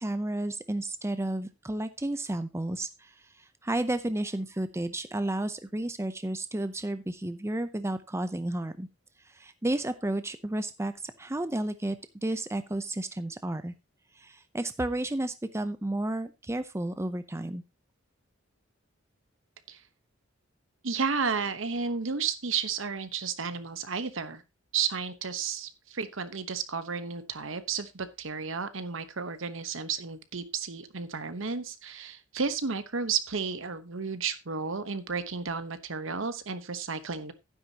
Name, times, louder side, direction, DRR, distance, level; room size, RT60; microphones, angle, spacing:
voice 1, 0.0-8.9 9.3-13.7 14.2-17.6, right 1 dB, 15° right, 11 dB, 0.6 m, -32 dB
voice 2, 20.8-24.4 24.7-37.3, right 5 dB, 70° right, 11 dB, 1.1 m, -32 dB
11.5 x 9.9 x 2.9 m, 0.24 s
head